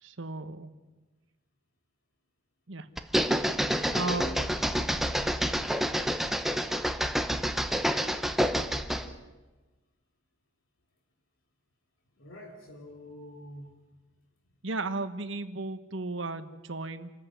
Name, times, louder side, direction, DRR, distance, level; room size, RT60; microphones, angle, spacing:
voice 1, 0.0-0.7 2.7-2.9 3.9-4.2 14.6-17.1, right 3 dB, 65° right, 10 dB, 1.3 m, -34 dB
sound 1, 3.0-9.1, equal, ahead, 1.0 m, -28 dB
voice 2, 3.8-4.5 7.6-7.7 8.9-9.2 12.2-13.8, equal, 80° left, 1 dB, 3.1 m, -45 dB
27.5 x 14.5 x 9.3 m, 1.2 s
head